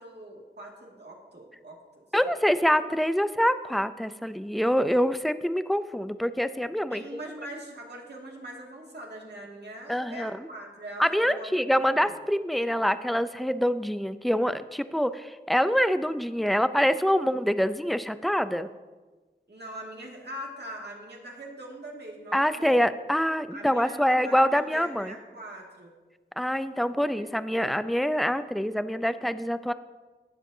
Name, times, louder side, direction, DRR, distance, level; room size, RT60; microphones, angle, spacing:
voice 1, 0.0-2.6 6.9-12.2 19.5-22.8 23.5-25.9 27.2-27.3, right 1 dB, 65° right, -2 dB, 2.2 m, -42 dB
voice 2, 2.1-7.2 9.9-10.5 11.0-18.7 22.3-25.1 26.4-29.7, equal, ahead, 13 dB, 0.4 m, -25 dB
17.5 x 7.4 x 2.7 m, 1.3 s
wide cardioid pair, 40°, 19 cm